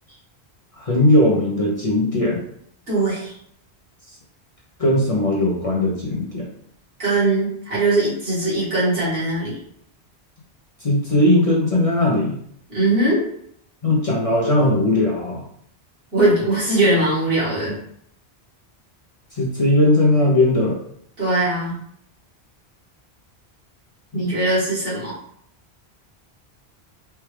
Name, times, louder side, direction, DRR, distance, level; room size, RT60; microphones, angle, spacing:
voice 1, 0.8-2.4 4.8-6.5 10.8-12.4 13.8-15.4 19.4-20.8 24.1-24.4, left 1 dB, 35° left, -4 dB, 0.7 m, -18 dB
voice 2, 2.9-3.3 7.0-9.6 12.7-13.2 16.1-17.8 21.2-21.8 24.1-25.1, right 2 dB, 65° right, -8 dB, 2.0 m, -20 dB
4.4 x 2.4 x 3.2 m, 0.67 s
omnidirectional pair, 1.1 m